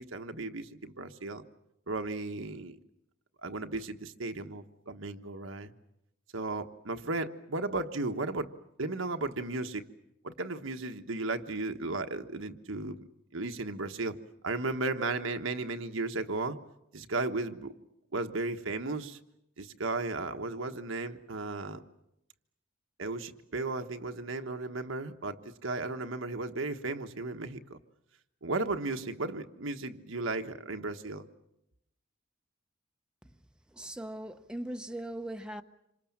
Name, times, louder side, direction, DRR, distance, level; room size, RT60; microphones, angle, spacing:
voice 1, 0.0-1.4 1.9-2.8 3.4-5.7 6.3-8.5 8.8-9.8 10.2-13.0 13.3-14.2 14.4-16.6 16.9-17.7 18.1-19.2 19.6-21.8 23.0-27.8 28.4-31.3, right 3 dB, 75° right, 1.4 m, -35 dB
voice 2, 33.8-35.6, right 1 dB, 5° right, 1.0 m, -39 dB
27.5 x 25.5 x 7.4 m
head